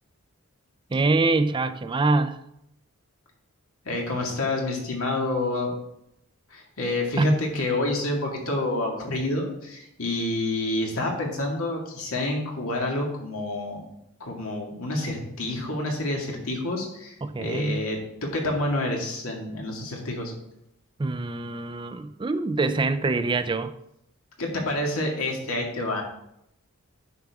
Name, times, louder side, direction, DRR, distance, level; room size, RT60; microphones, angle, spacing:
voice 1, 0.9-2.4 7.2-7.4 17.2-17.9 21.0-23.7, right 3 dB, 25° right, 11 dB, 0.4 m, -24 dB
voice 2, 3.9-5.7 6.5-13.9 14.2-20.3 24.4-26.0, left 2 dB, 85° left, 0 dB, 2.0 m, -28 dB
9.3 x 6.2 x 3.5 m, 0.79 s
head